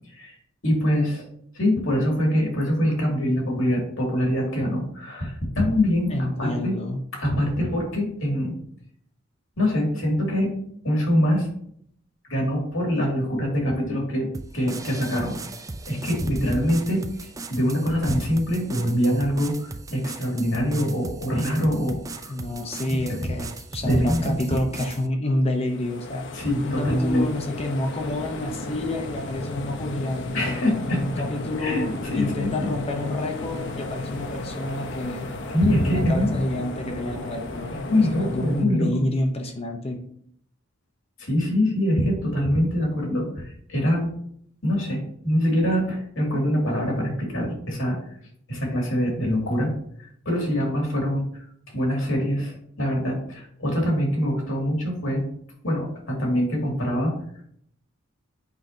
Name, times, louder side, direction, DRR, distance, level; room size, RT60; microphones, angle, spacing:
voice 1, 0.6-1.3 1.5-6.8 7.2-8.5 9.6-10.5 10.8-11.5 12.3-14.3 14.5-15.4 15.9-22.3 22.9-23.2 23.8-24.3 26.3-27.3 30.3-31.0 31.6-32.7 35.5-36.3 37.7-38.9 41.2-44.1 44.6-48.0 48.5-49.7 50.3-51.3 51.7-55.2 55.6-57.1, equal, 80° left, -1 dB, 2.3 m, -24 dB
voice 2, 6.1-7.0 22.3-26.3 26.6-30.5 30.9-35.3 35.6-37.7 38.1-40.0, left 1 dB, 30° left, 3 dB, 0.7 m, -28 dB
sound 1, 14.3-25.1, right 3 dB, 15° right, 0.4 m, -38 dB
sound 2, 25.6-38.7, left 2 dB, 65° left, 0.8 m, -34 dB
8.1 x 5.1 x 2.7 m, 0.67 s
head